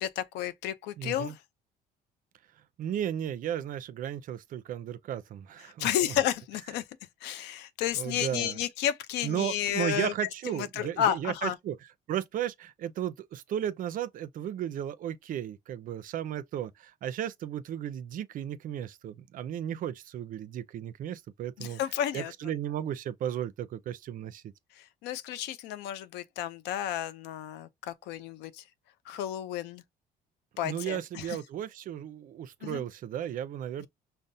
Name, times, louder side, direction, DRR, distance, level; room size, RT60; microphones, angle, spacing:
voice 1, 0.0-1.4 5.8-6.8 7.2-10.1 10.6-11.6 21.6-22.3 25.0-28.6 29.1-29.8 30.6-31.4 32.6-32.8, left 11 dB, 90° left, 0.5 m, -32 dB
voice 2, 1.0-1.3 2.8-6.1 8.0-8.6 9.2-11.8 12.1-21.8 22.1-24.5 30.6-33.9, right 10 dB, 55° right, 0.4 m, -35 dB
5.3 x 2.1 x 2.6 m
cardioid pair, 110°, 17 cm